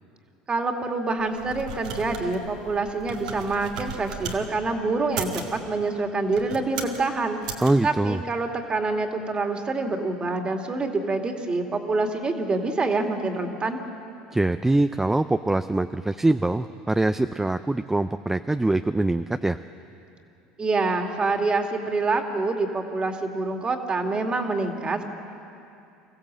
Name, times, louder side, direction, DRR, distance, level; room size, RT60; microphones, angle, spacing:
voice 1, 0.5-13.8 20.6-25.0, right 3 dB, 25° right, 4 dB, 2.2 m, -26 dB
sound 1, 1.2-4.4 5.0-5.6 6.2-7.0 7.4-7.7, right 6 dB, 90° right, 2.0 m, -36 dB
voice 2, 7.6-8.2 14.3-19.6, right 2 dB, 10° right, 10 dB, 0.4 m, -23 dB
25.0 x 15.0 x 7.5 m, 2.6 s
supercardioid pair, 90°, 4 cm